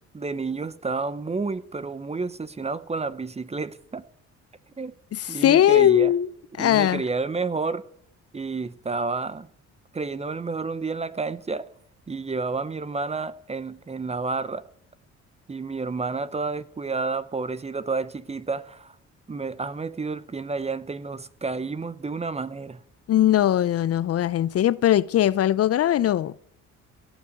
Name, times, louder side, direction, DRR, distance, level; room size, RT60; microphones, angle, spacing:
voice 1, 0.1-4.0 4.8-4.9 5.3-6.1 6.6-7.8 8.3-9.5 9.9-11.7 12.1-14.6 15.5-19.0 19.3-22.8, right 4 dB, 20° right, 0.8 m, -30 dB
voice 2, 5.1-6.3 6.6-7.0 23.1-26.3, left 11 dB, 55° left, 0.5 m, -20 dB
16.5 x 7.2 x 8.0 m
cardioid pair, 90°, 30 cm